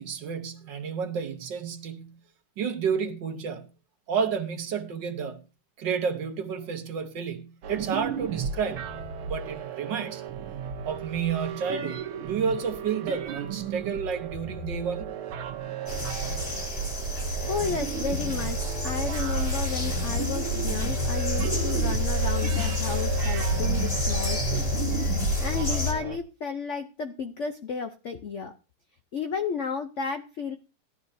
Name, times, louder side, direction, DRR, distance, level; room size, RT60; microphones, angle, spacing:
voice 1, 0.0-2.2 2.6-3.7 4.1-5.5 5.8-8.9 9.3-10.2 10.9-15.2, right 6 dB, 60° right, 1.7 m, -31 dB
sound 1, 7.6-26.2, right 8 dB, 90° right, 1.8 m, -35 dB
sound 2, 15.9-25.9, left 1 dB, 25° left, 2.4 m, -28 dB
voice 2, 17.4-25.0 25.4-28.5 29.1-30.6, left 5 dB, 85° left, 0.6 m, -33 dB
16.5 x 12.0 x 2.7 m
omnidirectional pair, 2.3 m